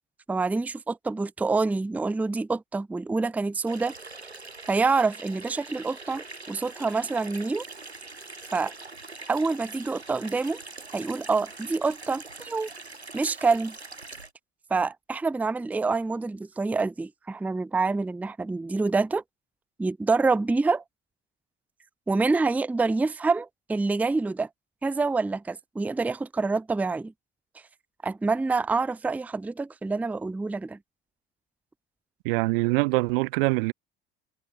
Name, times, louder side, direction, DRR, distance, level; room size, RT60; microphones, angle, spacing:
voice 1, 0.3-3.9 4.7-7.6 8.5-8.7 9.3-10.6 10.9-12.7 13.1-13.8 14.7-19.2 19.8-20.8 22.1-24.5 24.8-27.1 28.0-30.8, right 3 dB, 5° right, 0.5 m, -26 dB
Water tap faucet / Sink (filling or washing), 3.7-14.3, right 3 dB, 90° right, 4.2 m, -43 dB
voice 2, 32.2-33.7, right 27 dB, 60° right, 0.7 m, -24 dB
figure-of-eight pair, 60°, 31 cm